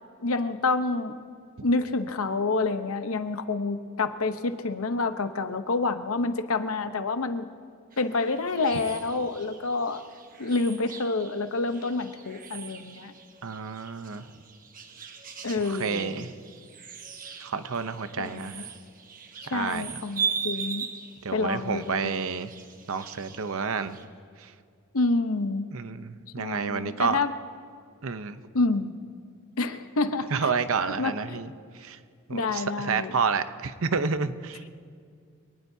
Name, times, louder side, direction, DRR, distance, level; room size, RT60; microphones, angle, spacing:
voice 1, 0.2-1.2 1.6-7.5 8.0-10.0 10.4-13.1 15.4-16.3 18.2-18.6 19.5-20.9 21.3-22.1 24.9-25.7 26.4-27.3 28.5-28.9 29.6-30.5 31.0-31.4 32.3-33.1, left 3 dB, 70° left, 9 dB, 0.9 m, -28 dB
sound 1, 7.9-24.0, right 6 dB, 40° right, 1.3 m, -39 dB
voice 2, 13.4-14.3 15.6-16.3 17.4-18.6 19.5-19.9 21.2-22.5 22.9-24.0 24.4-24.5 25.7-27.2 28.0-28.4 30.3-32.0 32.3-34.6, right 5 dB, 70° right, 11 dB, 0.8 m, -30 dB
25.5 x 19.0 x 2.8 m, 2.2 s
head